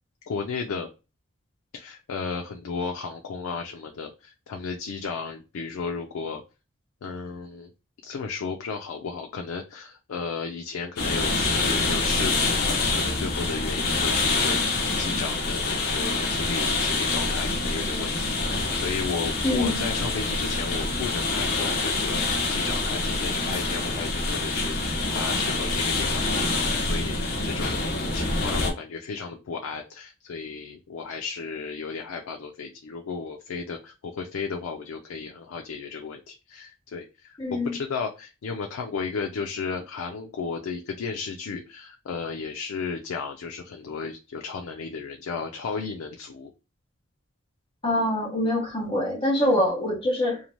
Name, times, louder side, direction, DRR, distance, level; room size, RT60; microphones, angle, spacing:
voice 1, 0.3-0.9 1.7-6.4 7.0-7.7 8.0-27.8 28.1-46.5, left 5 dB, 90° left, 3 dB, 0.4 m, -34 dB
sound 1, 11.0-28.7, left 3 dB, 45° left, 0.6 m, -26 dB
voice 2, 19.4-19.8 37.4-37.7 47.8-50.4, left 1 dB, 25° left, -3 dB, 1.0 m, -24 dB
2.7 x 2.1 x 3.0 m, 0.29 s
head